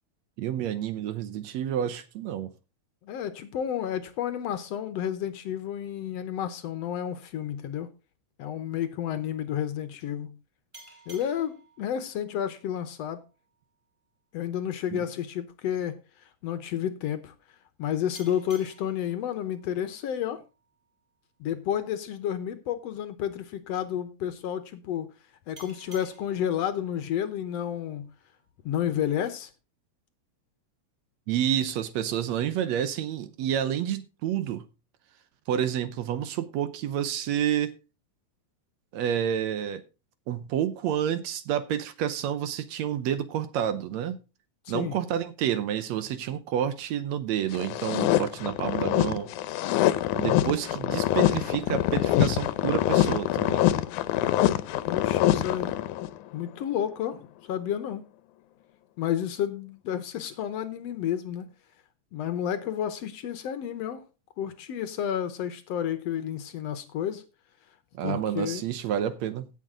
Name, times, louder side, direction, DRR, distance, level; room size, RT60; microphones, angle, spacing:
voice 1, 0.4-2.5 14.9-15.0 31.3-34.7 35.5-37.7 38.9-39.8 40.3-44.2 44.7-49.3 50.2-53.7 67.9-69.5, right 10 dB, 70° right, 2.0 m, -29 dB
voice 2, 3.0-7.9 8.4-10.4 11.1-13.2 14.3-16.0 16.4-17.3 17.8-20.4 21.4-25.1 25.5-28.1 28.6-29.5 44.7-45.0 50.2-50.5 54.9-55.8 56.3-58.0 59.0-61.5 62.1-64.0 64.4-67.2 68.0-68.6, left 10 dB, 70° left, 1.8 m, -31 dB
sound 1, 10.7-14.0 18.1-21.4 25.6-28.5, right 1 dB, 10° right, 4.5 m, -55 dB
sound 2, 47.5-56.1, left 13 dB, 85° left, 2.1 m, -25 dB
17.0 x 6.7 x 3.7 m
omnidirectional pair, 3.4 m